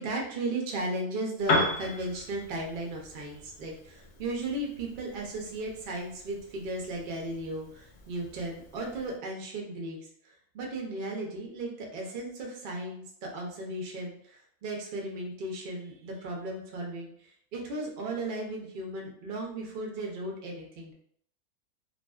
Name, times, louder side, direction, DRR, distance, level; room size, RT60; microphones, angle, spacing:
voice 1, 0.0-10.0 10.2-20.9, right 2 dB, 70° right, -1 dB, 0.5 m, -36 dB
Piano, 1.4-9.2, left 2 dB, 65° left, 0.6 m, -36 dB
2.5 x 2.3 x 2.2 m, 0.65 s
omnidirectional pair, 1.6 m